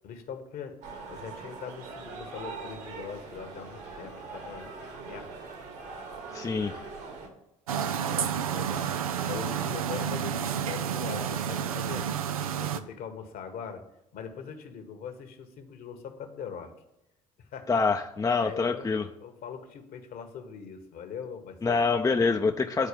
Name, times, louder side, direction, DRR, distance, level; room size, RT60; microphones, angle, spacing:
voice 1, 0.0-5.3 7.9-12.1 12.6-13.8 14.1-16.7 17.4-17.8 18.4-18.9 19.2-21.8, left 7 dB, 55° left, 7 dB, 1.5 m, -41 dB
sound 1, 0.8-7.3, right 4 dB, 65° right, 2.2 m, -42 dB
voice 2, 6.3-6.7 17.7-19.1 21.6-22.9, left 4 dB, 20° left, 5 dB, 0.7 m, -25 dB
sound 2, 7.7-12.8, right 8 dB, 85° right, 0.5 m, -30 dB
10.0 x 4.5 x 7.0 m, 0.86 s
figure-of-eight pair, 55°, 18 cm